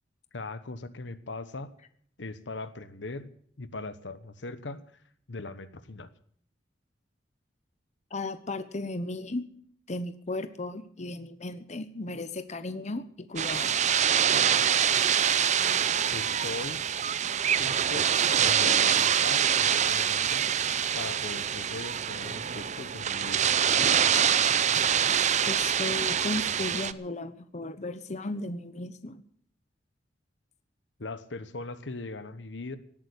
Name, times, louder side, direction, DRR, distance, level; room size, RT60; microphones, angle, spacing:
voice 1, 0.3-1.7 2.2-4.8 5.3-6.1 16.1-16.8 17.6-18.1 18.4-23.5 31.0-32.8, left 3 dB, 80° left, 13 dB, 1.1 m, -40 dB
voice 2, 8.1-9.4 9.9-13.8 25.4-29.2, left 2 dB, 40° left, 11 dB, 1.0 m, -35 dB
sound 1, 13.4-26.9, right 8 dB, 40° right, 0.6 m, -25 dB
17.5 x 8.8 x 8.4 m, 0.62 s
head